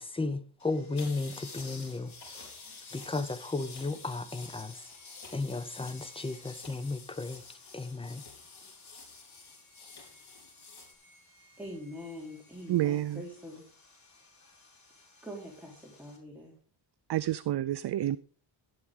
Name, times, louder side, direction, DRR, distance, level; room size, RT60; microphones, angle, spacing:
voice 1, 0.0-2.5 2.9-4.9 5.3-7.4 7.7-8.3, left 3 dB, 10° left, 0.8 m, -34 dB
Sawing, 0.6-16.2, left 2 dB, 35° left, 4.7 m, -61 dB
sound 1, 0.9-10.9, left 4 dB, 55° left, 3.9 m, -49 dB
voice 2, 11.6-13.7 15.2-16.5, left 1 dB, 5° right, 3.8 m, -44 dB
voice 3, 12.7-13.2 17.1-18.2, right 13 dB, 60° right, 0.5 m, -29 dB
12.0 x 10.0 x 3.7 m
wide cardioid pair, 100°, 47 cm